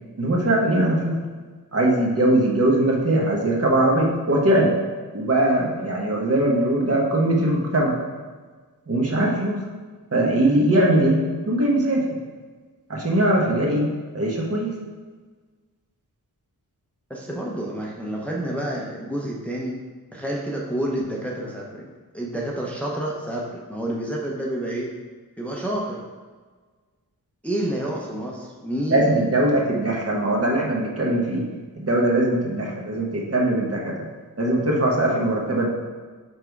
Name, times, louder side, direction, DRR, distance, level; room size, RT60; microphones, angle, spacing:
voice 1, 0.2-1.2 1.7-4.7 5.1-8.0 8.9-9.6 10.1-12.0 12.9-14.7 28.9-31.4 31.7-34.1 34.4-35.7, right 1 dB, 40° right, -2 dB, 1.1 m, -21 dB
voice 2, 17.1-19.8 20.1-21.9 22.1-24.9 25.4-26.0 27.4-29.2, right 1 dB, 5° left, -3 dB, 0.7 m, -29 dB
6.0 x 3.5 x 4.6 m, 1.4 s
wide cardioid pair, 115°, 37 cm